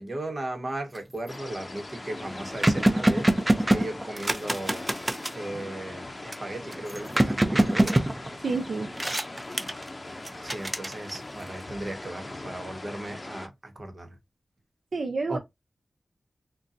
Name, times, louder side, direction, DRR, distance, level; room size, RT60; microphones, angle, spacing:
voice 1, 0.0-4.8 5.3-8.1 10.4-14.2 15.3-15.4, right 1 dB, 50° right, 1.1 m, -36 dB
sound 1, 0.9-1.3 1.8-1.9 2.0-5.4 6.3-8.6 9.0-9.9 10.2-11.4, right 1 dB, 20° right, 0.6 m, -25 dB
sound 2, 1.3-13.5, left 2 dB, 35° left, 0.6 m, -41 dB
voice 2, 8.4-9.0 14.9-15.4, right 3 dB, 75° right, 0.5 m, -29 dB
3.7 x 2.3 x 2.6 m
cardioid pair, 45°, 0 cm